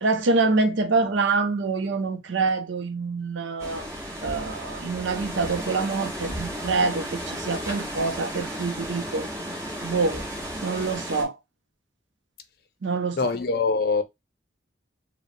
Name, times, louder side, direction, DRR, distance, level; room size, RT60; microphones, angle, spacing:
voice 1, 0.0-3.9 4.2-9.3 9.8-10.2 10.6-11.4 12.8-13.3, right 3 dB, 85° right, 0.6 m, -26 dB
sound 1, 3.6-11.2, equal, 15° right, 0.9 m, -34 dB
voice 2, 13.2-14.0, left 4 dB, 55° left, 0.5 m, -23 dB
3.9 x 2.1 x 2.5 m
head